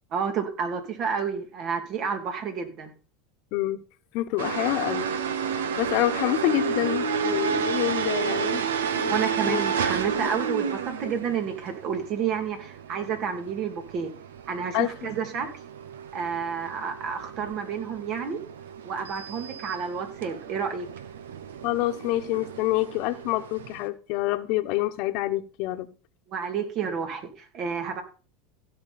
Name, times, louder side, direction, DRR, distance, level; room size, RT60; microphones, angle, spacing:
voice 1, 0.1-2.9 9.1-14.1 14.5-15.5 16.1-18.4 18.8-20.9 26.3-28.0, right 6 dB, 50° right, 6 dB, 2.7 m, -30 dB
voice 2, 3.5-3.8 4.1-5.1 5.8-8.6 8.9-9.6 10.1-10.4 14.7-15.1 21.6-25.9, left 16 dB, 60° left, 10 dB, 1.1 m, -27 dB
sound 1, 4.4-23.9, right 6 dB, 90° right, 1.0 m, -31 dB
16.0 x 6.1 x 4.3 m, 0.35 s
hypercardioid pair, 100°, 0 cm